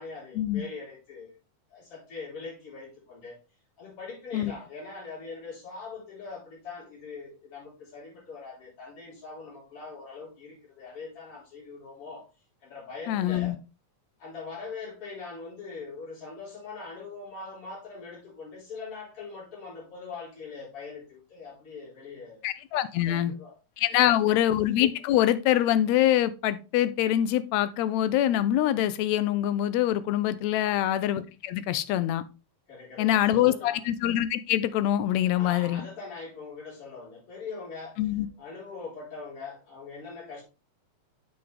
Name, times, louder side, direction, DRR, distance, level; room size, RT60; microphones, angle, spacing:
voice 1, 0.0-1.4 1.7-3.4 3.8-12.3 12.6-13.6 14.2-22.4 23.0-23.6 23.9-24.3 30.6-30.9 32.7-33.8 35.3-38.0 38.4-40.4, left 4 dB, 50° left, 5.2 m, -42 dB
voice 2, 13.1-13.6 22.4-23.3 23.8-32.2 33.0-35.8 38.0-38.3, left 12 dB, 75° left, 1.8 m, -24 dB
7.7 x 5.8 x 3.4 m
omnidirectional pair, 3.4 m